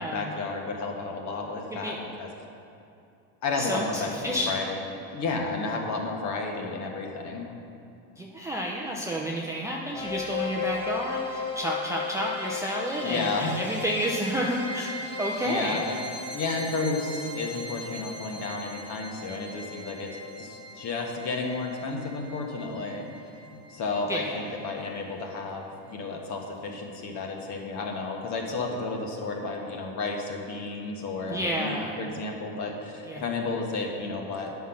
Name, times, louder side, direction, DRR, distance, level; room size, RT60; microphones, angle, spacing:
voice 1, 0.0-2.3 3.4-4.8 5.1-7.5 13.0-13.5 15.4-16.0 16.3-20.1 20.4-23.1 23.4-34.6, left 3 dB, 40° left, 1 dB, 1.4 m, -32 dB
voice 2, 3.6-4.6 8.2-14.9 15.2-15.8 24.1-24.5 31.3-32.0 33.1-33.3, equal, 5° right, -3 dB, 0.5 m, -30 dB
sound 1, 9.9-24.9, left 4 dB, 10° left, 0.8 m, -37 dB
9.3 x 5.9 x 5.8 m, 2.6 s
supercardioid pair, 140°, 42 cm